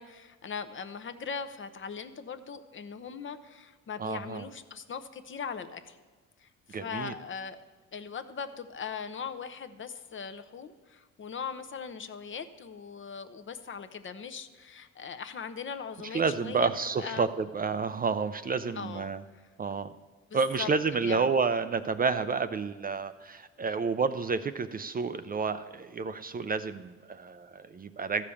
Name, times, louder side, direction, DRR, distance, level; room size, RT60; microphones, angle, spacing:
voice 1, 0.0-6.0 6.4-7.6 7.9-16.7 17.0-17.3 18.7-19.5 20.3-20.7 21.0-21.3, left 6 dB, 40° left, 9 dB, 0.7 m, -40 dB
voice 2, 4.0-4.4 6.7-7.1 16.1-19.2 19.6-19.9 20.3-28.2, right 5 dB, 30° right, 11 dB, 0.4 m, -30 dB
13.0 x 5.1 x 7.0 m, 1.3 s
cardioid pair, 90°, 30 cm